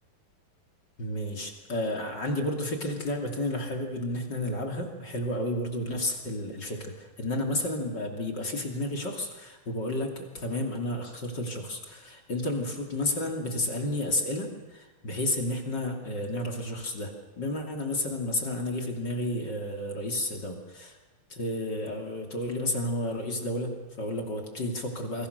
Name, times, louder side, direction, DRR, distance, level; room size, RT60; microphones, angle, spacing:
voice 1, 1.0-21.0 21.3-25.3, left 1 dB, 30° left, 2 dB, 3.0 m, -31 dB
28.0 x 24.0 x 6.7 m, 1.1 s
omnidirectional pair, 4.1 m